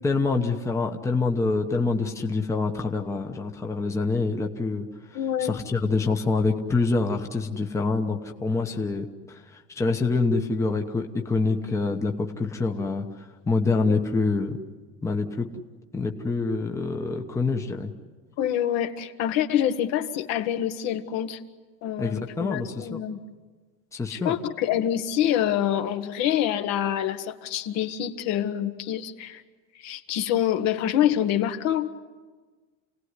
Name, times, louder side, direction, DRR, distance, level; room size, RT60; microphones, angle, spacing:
voice 1, 0.0-4.9 5.4-14.6 15.0-15.5 15.9-17.9 22.0-23.0 23.9-24.3, left 3 dB, 10° left, 3 dB, 1.1 m, -26 dB
voice 2, 5.1-5.6 13.7-14.0 18.4-21.4 21.8-23.2 24.1-29.4 29.7-31.9, left 10 dB, 55° left, 8 dB, 1.6 m, -26 dB
28.5 x 18.5 x 9.7 m, 1.4 s
cardioid pair, 165°, 32 cm